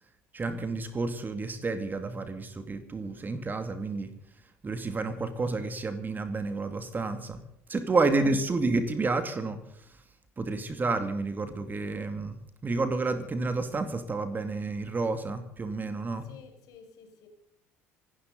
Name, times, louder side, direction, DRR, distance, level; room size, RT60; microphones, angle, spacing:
voice 1, 0.3-4.1 4.6-7.4 7.7-9.9 10.4-12.4 12.6-16.3, right 3 dB, 25° right, 9 dB, 2.3 m, -30 dB
voice 2, 8.1-8.6 16.2-17.3, left 6 dB, 55° left, 4 dB, 5.2 m, -52 dB
26.5 x 12.5 x 4.0 m, 0.76 s
figure-of-eight pair, 60°, 7 cm